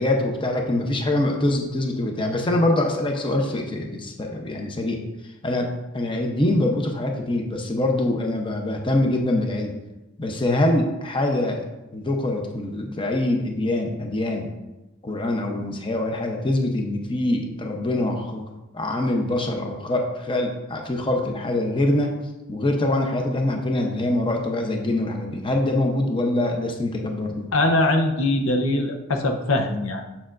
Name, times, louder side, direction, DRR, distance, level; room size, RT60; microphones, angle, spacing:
voice 1, 0.0-5.0 5.4-9.7 10.2-11.6 11.9-14.5 15.0-18.4 18.7-22.1 22.5-27.5, left 1 dB, 25° left, 2 dB, 0.7 m, -24 dB
voice 2, 27.5-30.1, left 2 dB, 75° left, 4 dB, 0.8 m, -22 dB
7.1 x 6.8 x 2.5 m, 0.99 s
head